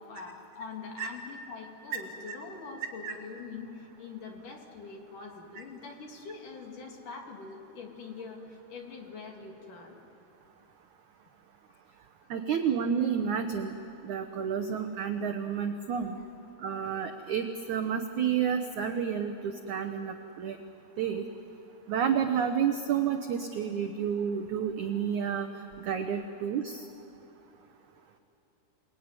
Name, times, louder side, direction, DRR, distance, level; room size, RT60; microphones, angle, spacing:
voice 1, 0.0-10.0 12.2-12.4 16.2-16.3, left 4 dB, 55° left, 1 dB, 3.8 m, -44 dB
voice 2, 12.3-13.7 14.0-16.2 16.6-20.6 21.0-21.2 21.9-25.5 25.8-26.8, right 7 dB, 85° right, 6 dB, 1.7 m, -30 dB
28.5 x 21.0 x 9.7 m, 2.8 s
omnidirectional pair, 4.9 m